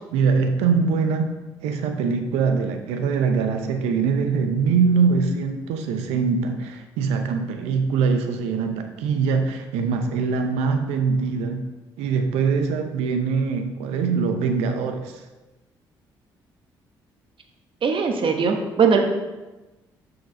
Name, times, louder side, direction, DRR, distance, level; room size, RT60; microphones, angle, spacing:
voice 1, 0.1-1.3 1.6-11.6 12.0-15.2, right 5 dB, 75° right, 6 dB, 0.7 m, -23 dB
voice 2, 17.8-19.0, right 5 dB, 50° right, 4 dB, 1.1 m, -20 dB
6.3 x 4.9 x 4.9 m, 1.1 s
hypercardioid pair, 45°, 11 cm